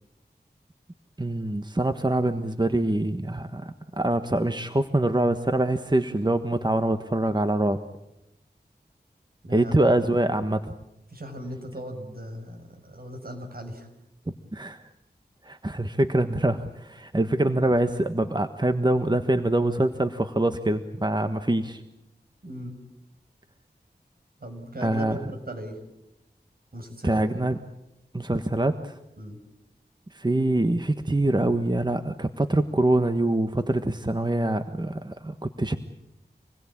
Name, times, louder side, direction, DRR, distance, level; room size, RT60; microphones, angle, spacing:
voice 1, 1.2-7.8 9.5-10.7 14.5-14.9 15.4-21.8 24.8-25.2 27.0-27.6 28.1-29.0 30.1-35.8, right 1 dB, 25° right, 8 dB, 1.4 m, -24 dB
voice 2, 9.4-9.8 11.1-13.9 22.4-22.8 24.4-25.8 26.7-27.2 29.2-29.4, equal, 60° right, 5 dB, 6.1 m, -38 dB
27.5 x 20.5 x 8.8 m, 0.89 s
wide cardioid pair, 45°, 17 cm